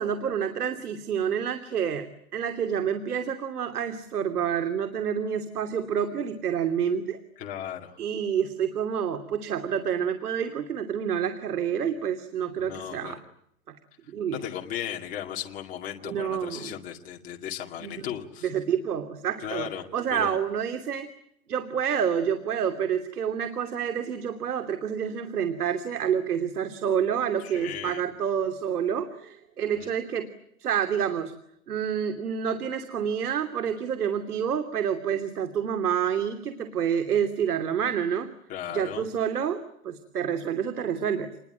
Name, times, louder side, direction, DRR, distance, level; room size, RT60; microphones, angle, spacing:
voice 1, 0.0-7.2 8.0-13.2 14.1-14.4 16.0-16.8 17.8-17.9 18.4-21.1 21.5-30.3 30.6-31.3 31.7-38.3 38.7-41.3, right 8 dB, 85° right, 8 dB, 3.0 m, -28 dB
voice 2, 7.4-8.0 12.6-13.2 14.3-18.5 19.4-19.8 20.1-20.4 27.4-28.0 29.7-29.9 38.5-39.0, left 10 dB, 20° left, 1 dB, 2.2 m, -36 dB
28.0 x 21.5 x 9.1 m, 0.72 s
hypercardioid pair, 165°, 44 cm